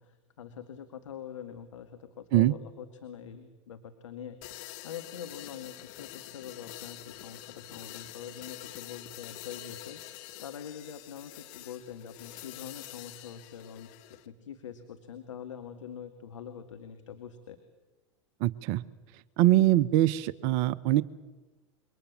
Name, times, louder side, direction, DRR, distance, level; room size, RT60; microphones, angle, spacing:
voice 1, 0.0-17.6, left 8 dB, 80° left, 7 dB, 2.0 m, -44 dB
sound 1, 4.4-14.3, left 15 dB, 55° left, 1.9 m, -46 dB
voice 2, 18.4-18.8 19.4-21.0, right 15 dB, 55° right, 16 dB, 0.9 m, -23 dB
27.5 x 24.0 x 7.5 m, 1.2 s
hypercardioid pair, 90°, 16 cm